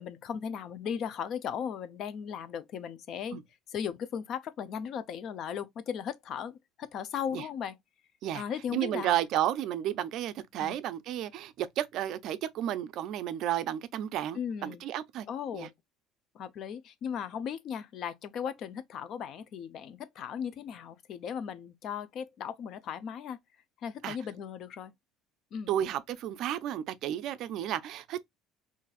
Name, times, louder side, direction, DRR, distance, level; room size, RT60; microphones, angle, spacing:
voice 1, 0.0-3.4 3.7-7.8 8.3-9.1 10.6-10.8 14.3-14.8 15.3-15.7 16.3-23.4 23.8-24.9 25.5-25.7, left 8 dB, 50° left, 0.5 m, -37 dB
voice 2, 8.7-15.3 15.5-15.7 24.0-24.2 25.7-28.2, right 11 dB, 55° right, 0.4 m, -32 dB
3.9 x 2.5 x 2.4 m
cardioid pair, 145°, 0 cm